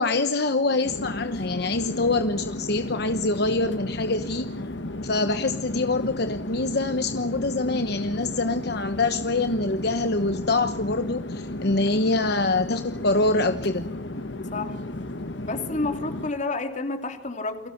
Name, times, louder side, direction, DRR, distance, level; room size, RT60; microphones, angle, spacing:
voice 1, 0.0-4.5 5.0-13.9, left 2 dB, 65° left, 9 dB, 1.1 m, -25 dB
Chatter / Fixed-wing aircraft airplane, 0.8-16.3, left 1 dB, 90° left, 1.6 m, -34 dB
voice 2, 14.3-14.8 15.5-17.7, left 3 dB, 45° left, 7 dB, 2.9 m, -30 dB
29.0 x 23.0 x 5.9 m, 0.94 s
head